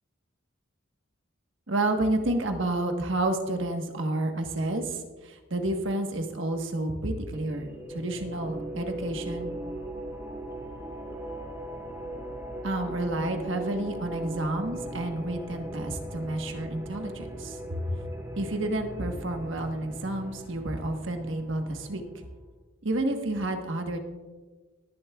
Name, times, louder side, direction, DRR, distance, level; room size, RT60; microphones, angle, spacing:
voice 1, 1.7-9.5 12.6-17.8 18.4-22.2 22.8-24.0, right 1 dB, 65° right, 4 dB, 1.3 m, -30 dB
sound 1, 6.9-22.3, right 1 dB, 15° right, 1.7 m, -39 dB
19.0 x 11.0 x 2.3 m, 1.3 s
head